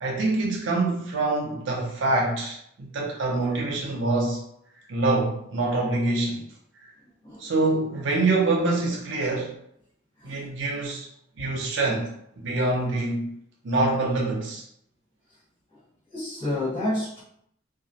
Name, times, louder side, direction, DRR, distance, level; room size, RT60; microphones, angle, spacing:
voice 1, 0.0-4.4 4.9-6.4 6.8-6.9 7.4-9.5 10.2-11.1 11.4-12.1 12.4-13.3 13.6-14.7, right 2 dB, 70° right, 0.5 m, -25 dB
voice 2, 10.2-10.6 16.1-17.2, left 1 dB, 45° left, 1.3 m, -30 dB
2.3 x 2.0 x 2.7 m
head